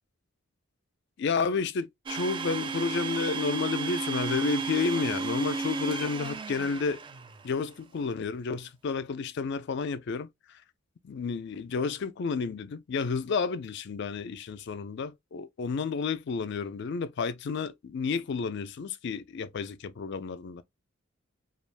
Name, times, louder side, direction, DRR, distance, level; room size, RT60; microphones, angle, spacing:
voice 1, 1.2-7.0 7.4-10.3 11.0-20.6, left 5 dB, 55° left, 0.4 m, -31 dB
Domestic sounds home sounds, 2.1-7.6, right 4 dB, 25° right, 0.3 m, -33 dB
3.3 x 2.3 x 2.3 m
head